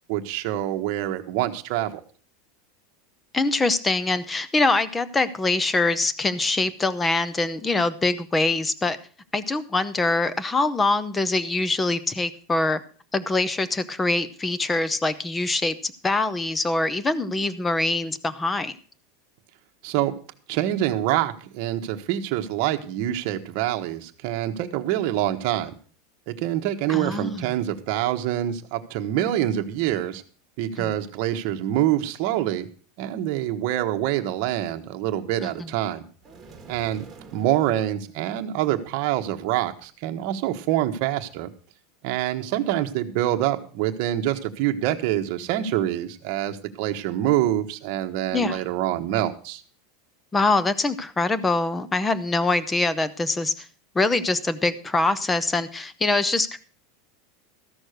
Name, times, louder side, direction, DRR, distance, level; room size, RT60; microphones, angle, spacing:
voice 1, 0.1-2.0 19.8-20.1 20.5-25.7 26.3-30.2 30.6-32.7 33.0-36.0 36.7-37.0 37.3-41.5 42.0-49.6, right 12 dB, 45° right, 6 dB, 1.1 m, -26 dB
voice 2, 3.3-9.0 9.3-12.8 13.1-18.7 26.9-27.5 30.8-30.9 35.4-35.7 48.3-48.6 50.3-53.7 53.9-56.6, left 2 dB, 10° left, 15 dB, 0.6 m, -24 dB
sound 1, 36.2-37.8, right 4 dB, 10° right, 1.5 m, -46 dB
14.0 x 6.3 x 6.5 m, 0.42 s
supercardioid pair, 170°, 0 cm